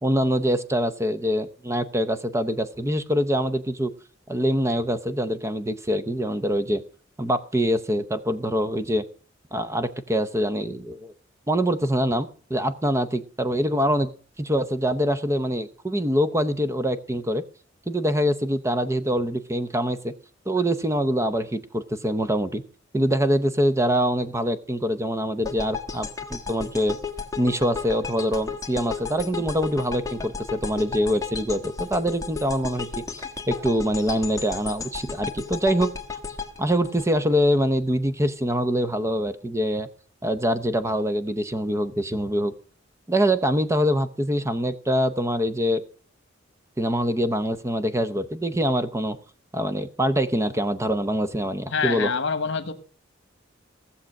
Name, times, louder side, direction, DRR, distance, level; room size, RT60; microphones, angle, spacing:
voice 1, 0.0-3.9 4.3-6.8 7.2-9.0 9.5-11.1 11.5-14.1 14.4-17.4 17.9-20.1 20.5-22.6 22.9-27.0 27.4-35.9 36.6-39.9 40.2-42.5 43.1-45.8 46.8-49.2 49.5-52.1, equal, 15° right, 0.7 m, -24 dB
sound 1, 25.4-37.6, left 5 dB, 15° left, 1.4 m, -34 dB
voice 2, 51.7-52.7, left 5 dB, 65° left, 1.2 m, -26 dB
16.0 x 7.2 x 6.3 m
head